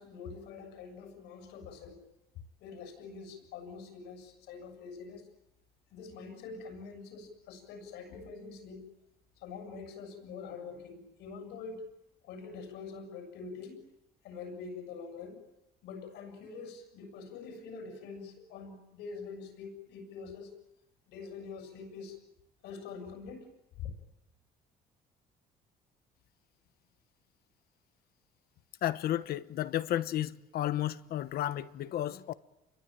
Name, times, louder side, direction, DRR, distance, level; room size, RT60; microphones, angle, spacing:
voice 1, 0.0-2.0 2.6-5.2 5.9-8.9 9.4-11.8 12.2-13.8 14.2-15.4 15.8-20.5 21.1-22.2 22.6-23.5 23.8-23.9, left 5 dB, 85° left, 7.6 m, -45 dB
voice 2, 28.8-32.3, left 12 dB, 65° left, 1.1 m, -32 dB
28.5 x 23.0 x 9.1 m
cardioid pair, 110°, 17 cm